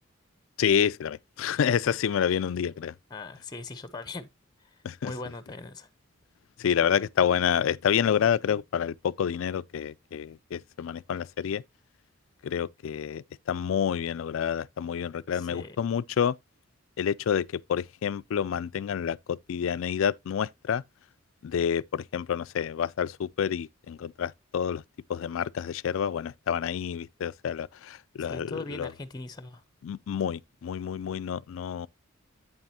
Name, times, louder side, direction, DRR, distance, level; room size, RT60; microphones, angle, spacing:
voice 1, 0.6-2.9 4.8-5.1 6.6-11.6 12.4-16.4 17.0-20.8 21.4-24.8 25.1-28.9 29.8-31.9, left 8 dB, 70° left, 0.3 m, -28 dB
voice 2, 3.1-4.3 4.6-5.9 15.3-15.8 28.2-29.6, left 2 dB, 20° left, 0.7 m, -40 dB
8.8 x 7.4 x 2.8 m
head